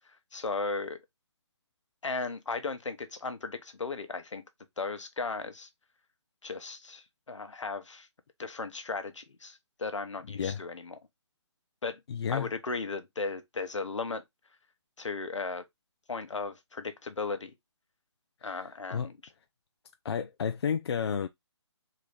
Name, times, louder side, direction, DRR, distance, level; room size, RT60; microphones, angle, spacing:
voice 1, 0.3-1.0 2.0-4.4 4.8-5.7 6.4-8.1 8.4-11.0 11.8-12.0 12.3-14.2 15.0-15.6 16.1-17.5 18.4-19.2, left 4 dB, 85° left, 0.9 m, -36 dB
voice 2, 12.1-12.5 18.4-18.6 18.9-19.1 20.0-21.3, left 7 dB, 60° left, 0.4 m, -31 dB
3.8 x 2.7 x 3.1 m
hypercardioid pair, 155°, 15 cm